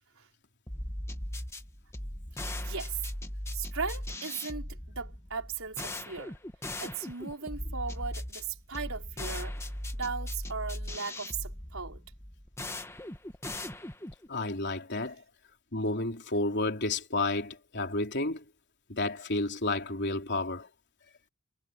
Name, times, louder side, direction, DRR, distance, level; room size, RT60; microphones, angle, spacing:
sound 1, 0.7-14.3, left 1 dB, 10° left, 1.6 m, -38 dB
voice 1, 2.6-3.0 3.5-6.3 6.8-9.5 9.9-12.0, right 5 dB, 65° right, 5.4 m, -37 dB
voice 2, 14.3-15.2 15.7-18.4 18.9-20.7, left 2 dB, 50° left, 3.8 m, -31 dB
head